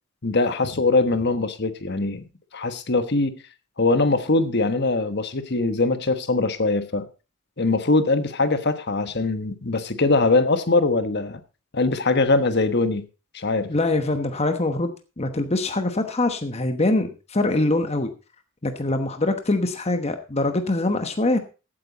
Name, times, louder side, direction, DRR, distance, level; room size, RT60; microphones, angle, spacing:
voice 1, 0.2-2.3 2.5-3.4 3.8-7.1 7.6-11.4 11.7-13.1 13.3-13.7, left 3 dB, 50° left, 10 dB, 1.3 m, -22 dB
voice 2, 13.7-18.1 18.6-21.4, left 2 dB, 30° left, 7 dB, 1.1 m, -23 dB
15.5 x 8.9 x 4.1 m, 0.32 s
head